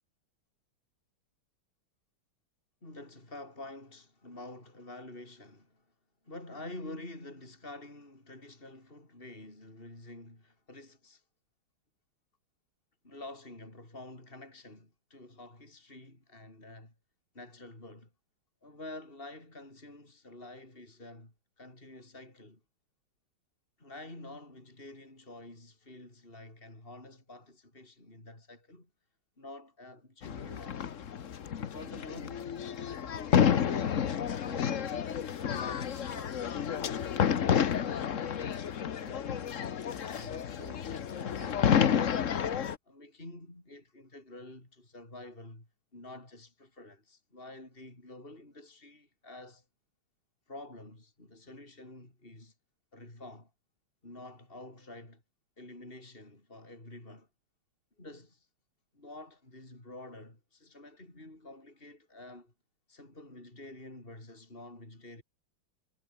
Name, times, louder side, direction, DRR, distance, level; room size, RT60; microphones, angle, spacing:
voice 1, 2.8-5.9 6.2-11.2 13.0-16.9 17.3-18.1 18.6-22.6 23.8-28.9 29.4-30.9 31.5-35.0 35.4-36.4 36.8-39.5 40.0-42.3 42.9-49.6 50.5-52.5 52.9-53.5 54.0-55.2 55.6-57.3 58.0-58.5 58.9-62.5 62.9-65.2, left 2 dB, 25° left, 6.2 m, -49 dB
sound 1, 30.2-42.8, left 8 dB, 45° left, 1.1 m, -30 dB
omnidirectional pair, 2.4 m